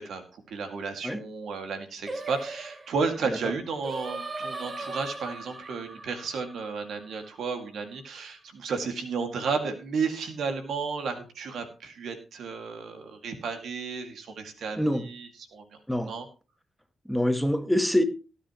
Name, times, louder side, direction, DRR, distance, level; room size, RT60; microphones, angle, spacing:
voice 1, 0.0-15.8 16.0-16.3, right 5 dB, 75° right, 7 dB, 2.1 m, -33 dB
Singing, 2.1-7.4, right 2 dB, 35° right, 1.8 m, -39 dB
voice 2, 17.1-18.0, equal, ahead, 7 dB, 1.7 m, -25 dB
18.0 x 9.0 x 3.0 m, 0.32 s
supercardioid pair, 60°, 0 cm